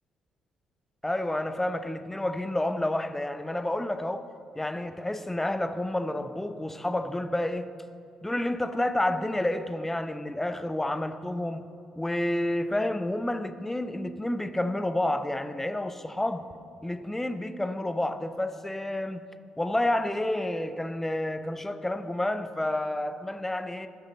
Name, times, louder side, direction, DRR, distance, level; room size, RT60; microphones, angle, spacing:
voice 1, 1.0-4.2 4.5-7.7 8.2-11.6 12.0-16.5 16.8-19.3 19.6-23.9, left 1 dB, 10° left, 0.7 m, -29 dB
18.5 x 6.3 x 4.1 m
figure-of-eight pair, 45°, 3 cm